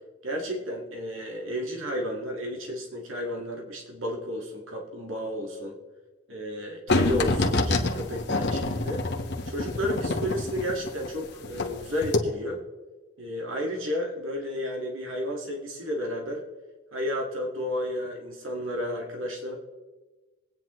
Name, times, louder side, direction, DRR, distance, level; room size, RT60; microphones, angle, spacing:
voice 1, 0.2-5.7 6.3-9.0 9.5-12.6 13.2-16.4 16.9-19.6, equal, 85° right, 1 dB, 1.9 m, -32 dB
sound 1, 6.9-11.7 12.0-12.2, left 2 dB, 60° left, 1.2 m, -26 dB
21.5 x 9.1 x 3.1 m, 1.2 s
head